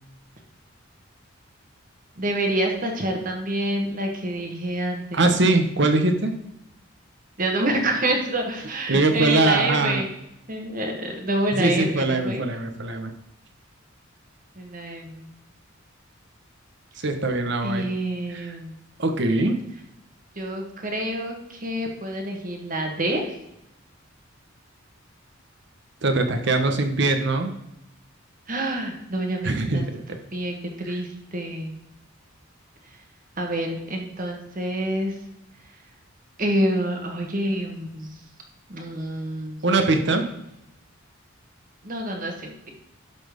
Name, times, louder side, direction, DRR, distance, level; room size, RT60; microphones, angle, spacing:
voice 1, 2.2-5.2 7.4-10.1 10.5-12.4 14.5-15.3 17.6-18.8 20.3-23.3 28.5-29.8 30.3-31.8 33.4-35.1 36.4-38.2 38.7-39.6 41.8-42.7, right 1 dB, 40° right, 2 dB, 1.6 m, -27 dB
voice 2, 5.1-6.3 8.9-10.0 11.5-13.1 17.0-17.8 18.3-18.6 19.0-19.6 26.0-27.5 29.4-29.8 30.9-31.0 39.6-40.3, right 2 dB, 55° right, 5 dB, 1.1 m, -22 dB
11.5 x 4.3 x 5.2 m, 0.85 s
head